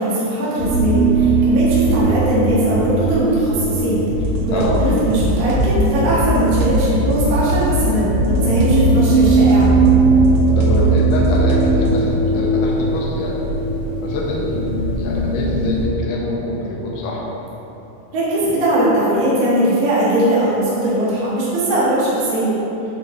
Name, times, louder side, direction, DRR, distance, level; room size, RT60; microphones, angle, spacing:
voice 1, 0.0-4.0 4.4-9.7 18.1-22.5, right 1 dB, 70° right, -10 dB, 1.5 m, -19 dB
sound 1, 0.6-15.9, right 3 dB, 65° left, 1.9 m, -18 dB
sound 2, 4.1-12.1, left 2 dB, 90° right, 3.1 m, -24 dB
voice 2, 4.5-4.9 10.6-13.4 14.0-14.6 15.0-17.2, left 2 dB, 90° left, -2 dB, 3.1 m, -25 dB
8.3 x 4.1 x 3.7 m, 3.0 s
omnidirectional pair, 5.2 m